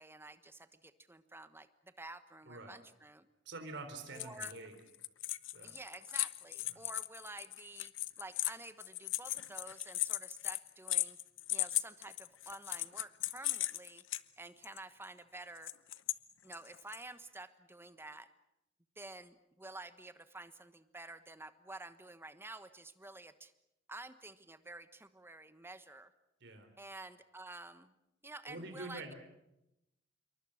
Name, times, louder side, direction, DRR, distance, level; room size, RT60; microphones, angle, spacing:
voice 1, 0.0-3.3 4.1-4.5 5.6-7.9 8.2-11.2 11.5-14.0 14.4-15.7 16.4-18.3 18.9-23.5 23.9-26.1 26.8-27.9 28.2-29.1, right 2 dB, 10° right, 11 dB, 1.2 m, -50 dB
voice 2, 2.5-2.8 3.5-4.8 5.5-5.7 6.7-6.8 26.4-26.7 28.5-29.1, right 2 dB, 65° right, 6 dB, 3.7 m, -46 dB
sound 1, 4.1-4.7 4.9-14.2 14.6-14.8 15.6-16.2 16.5-17.0, left 16 dB, 85° left, 0.9 m, -37 dB
27.5 x 23.5 x 6.5 m, 0.87 s
head